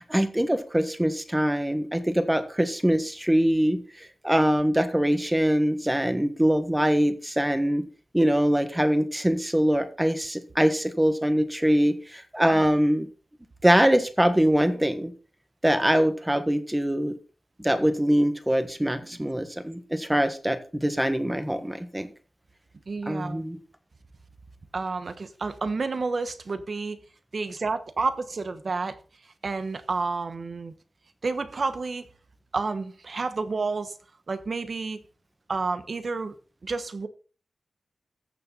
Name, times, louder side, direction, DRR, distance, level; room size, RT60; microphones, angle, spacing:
voice 1, 0.0-7.8 8.1-13.1 13.6-15.1 15.6-17.1 17.6-22.1 23.1-23.6, equal, 10° right, 1.5 m, -23 dB
voice 2, 22.9-23.4 24.7-27.0 27.3-29.0 29.4-30.7 31.2-32.1 32.5-34.0 34.3-35.0 35.5-36.3 36.6-37.1, right 4 dB, 50° right, 1.2 m, -30 dB
14.5 x 6.8 x 4.1 m
wide cardioid pair, 100°, 0 cm